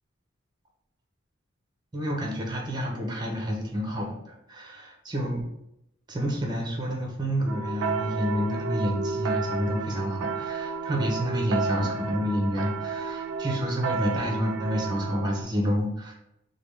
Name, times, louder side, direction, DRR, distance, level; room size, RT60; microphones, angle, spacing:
voice 1, 1.9-5.4 6.1-16.1, equal, 20° right, 0 dB, 0.6 m, -29 dB
sound 1, 7.5-15.4, right 4 dB, 85° right, 0.3 m, -32 dB
3.3 x 2.2 x 3.2 m, 0.81 s
head